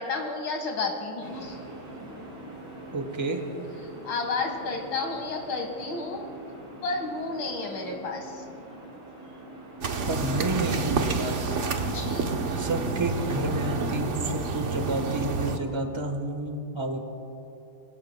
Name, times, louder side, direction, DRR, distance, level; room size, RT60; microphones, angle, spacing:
voice 1, 0.0-1.6 4.0-6.3 6.8-8.4 11.8-12.3, left 3 dB, 75° left, 2 dB, 2.4 m, -31 dB
sound 1, 1.2-13.9, right 1 dB, 80° right, 5.3 m, -43 dB
voice 2, 2.9-3.4 10.1-11.6 12.6-17.0, right 2 dB, 20° right, 5 dB, 0.9 m, -30 dB
sound 2, 9.8-15.6, right 4 dB, 50° right, 1.0 m, -29 dB
26.5 x 20.0 x 2.2 m, 2.9 s
omnidirectional pair, 2.1 m